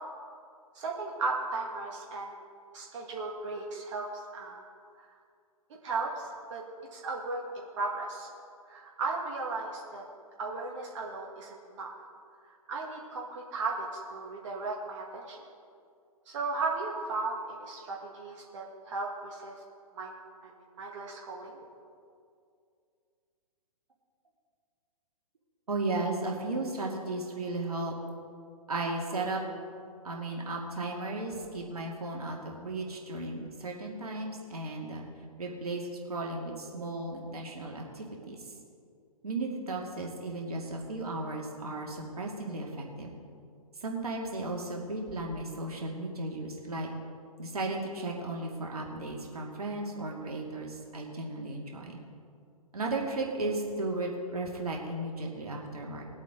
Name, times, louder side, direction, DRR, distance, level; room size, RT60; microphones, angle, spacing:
voice 1, 0.7-2.3 2.7-4.6 5.0-5.1 5.8-6.6 6.9-8.3 8.7-10.0 10.4-11.9 12.7-15.4 16.3-19.5 20.0-20.2 20.4-20.5 20.8-21.6, right 3 dB, 50° right, -2 dB, 2.0 m, -36 dB
voice 2, 25.7-27.9 28.7-29.4 30.0-35.0 35.4-38.4 39.2-43.1 43.8-46.9 47.4-52.0 52.7-56.0, right 2 dB, 75° right, -1 dB, 2.4 m, -35 dB
21.0 x 8.2 x 3.9 m, 2.3 s
figure-of-eight pair, 125°, 19 cm